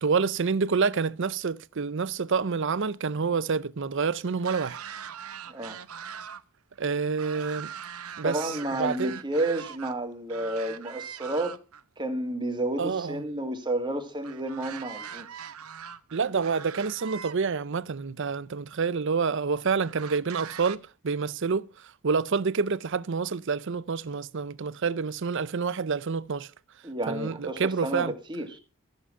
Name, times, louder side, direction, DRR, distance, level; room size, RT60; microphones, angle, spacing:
voice 1, 0.0-4.8 6.8-7.7 8.2-9.2 12.8-13.2 16.1-26.5 27.1-28.1, right 5 dB, 55° right, 0.6 m, -28 dB
sound 1, 4.4-6.4 6.7-9.9 10.3-11.8 14.2-17.3 18.3-18.4 19.8-20.8, right 8 dB, 85° right, 0.9 m, -41 dB
voice 2, 8.2-11.6 12.0-15.3 26.8-28.6, right 1 dB, 20° right, 2.1 m, -31 dB
14.0 x 8.6 x 5.5 m
head